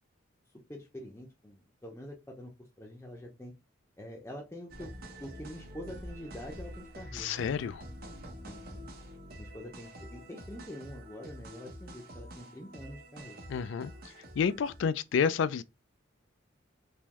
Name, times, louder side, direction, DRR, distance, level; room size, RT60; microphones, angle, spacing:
voice 1, 0.7-2.5 2.8-3.5 4.0-4.9 5.2-7.3 8.4-8.9 9.4-13.4, equal, 15° left, 0.6 m, -45 dB
sound 1, 4.7-14.9, equal, 50° right, 1.0 m, -47 dB
voice 2, 7.1-7.8 13.5-15.6, left 6 dB, 65° left, 0.3 m, -30 dB
3.6 x 3.0 x 3.0 m
head